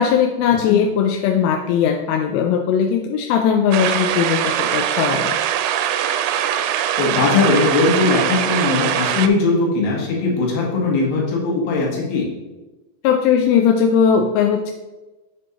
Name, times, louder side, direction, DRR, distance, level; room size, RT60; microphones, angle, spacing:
voice 1, 0.0-5.4 13.0-14.7, left 7 dB, 85° left, 3 dB, 2.7 m, -18 dB
sound 1, 3.7-9.3, right 10 dB, 90° right, 2.7 m, -21 dB
voice 2, 7.0-12.3, left 3 dB, 65° left, -2 dB, 3.1 m, -19 dB
7.5 x 6.9 x 2.9 m, 1.1 s
omnidirectional pair, 4.9 m